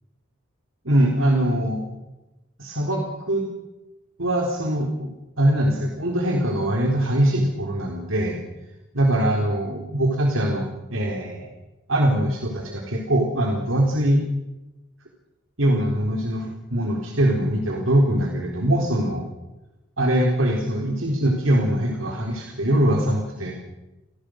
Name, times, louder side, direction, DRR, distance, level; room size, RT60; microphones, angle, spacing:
voice 1, 0.8-1.8 2.6-3.5 4.2-5.1 5.4-8.4 8.9-10.6 10.9-11.5 11.9-14.2 15.6-19.3 20.0-23.6, right 1 dB, 90° right, 0 dB, 4.1 m, -22 dB
29.5 x 18.5 x 6.5 m, 1.0 s
head